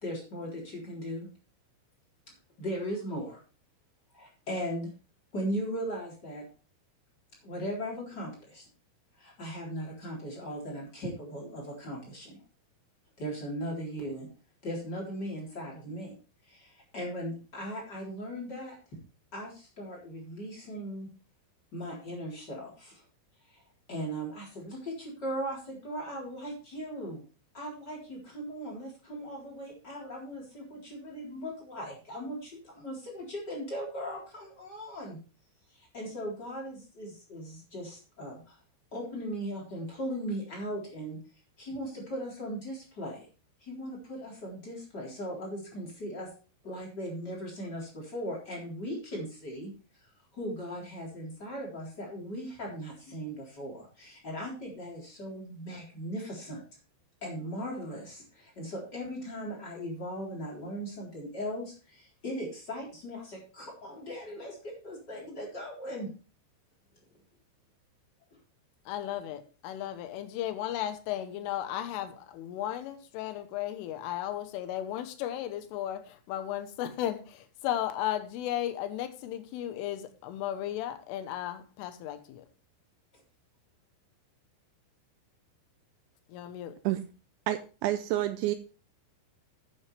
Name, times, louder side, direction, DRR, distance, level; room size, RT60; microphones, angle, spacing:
voice 1, 0.0-1.3 2.6-3.4 4.1-4.9 5.3-6.4 7.4-8.6 9.2-12.4 13.2-14.3 14.6-16.1 16.4-18.8 19.3-21.1 21.7-23.0 23.5-23.6 23.9-27.3 27.5-35.2 35.7-38.6 38.9-41.2 41.6-43.3 43.6-46.3 46.6-49.7 50.3-56.6 57.2-66.1, equal, 20° left, 3.8 m, -38 dB
voice 2, 68.9-82.5 86.3-86.8, left 12 dB, 80° left, 3.6 m, -35 dB
voice 3, 87.5-88.6, right 14 dB, 85° right, 2.6 m, -29 dB
12.0 x 9.0 x 3.4 m
omnidirectional pair, 5.8 m